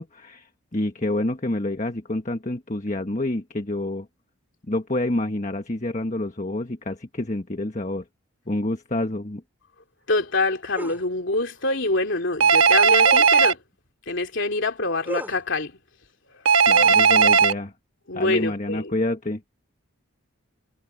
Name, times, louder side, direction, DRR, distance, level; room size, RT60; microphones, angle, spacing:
voice 1, 0.0-4.1 4.7-8.0 8.5-9.4 16.7-17.7 18.1-19.4, left 1 dB, 35° left, 1.4 m, -28 dB
voice 2, 10.1-13.6 14.1-15.7 18.1-18.9, left 2 dB, 55° left, 3.3 m, -25 dB
sound 1, 10.7-11.0 13.0-13.4 15.0-15.4 16.7-17.4, equal, 10° right, 4.1 m, -35 dB
Telephone, 12.4-13.5 16.5-17.5, right 5 dB, 75° right, 1.2 m, -16 dB
head